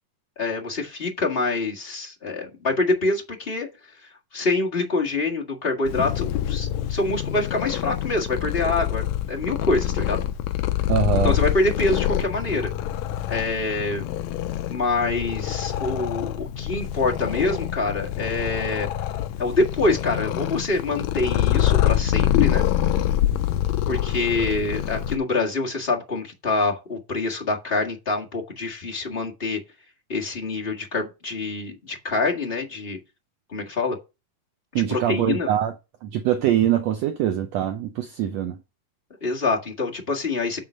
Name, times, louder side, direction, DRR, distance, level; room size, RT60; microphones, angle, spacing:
voice 1, 0.4-3.7 4.3-10.2 11.1-12.7 13.3-14.0 14.7-18.9 19.4-22.7 23.9-29.6 30.1-33.0 33.5-34.0 34.9-35.5 39.2-40.6, left 3 dB, 25° left, 1.3 m, -25 dB
Purr, 5.8-25.2, left 12 dB, 80° left, 1.7 m, -25 dB
voice 2, 10.9-11.4 34.7-35.7 36.0-38.6, right 11 dB, 75° right, 1.5 m, -23 dB
9.0 x 3.8 x 6.4 m
omnidirectional pair, 3.8 m